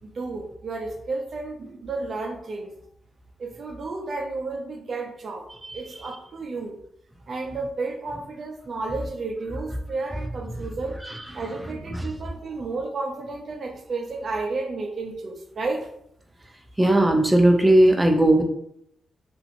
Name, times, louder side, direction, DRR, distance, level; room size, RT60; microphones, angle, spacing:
voice 1, 0.0-2.7 3.4-6.8 7.3-11.0 11.3-15.9, right 3 dB, 55° right, 3 dB, 0.5 m, -32 dB
voice 2, 16.8-18.4, right 1 dB, 10° right, 3 dB, 0.5 m, -17 dB
2.8 x 2.5 x 2.6 m, 0.75 s
cardioid pair, 75°, 0 cm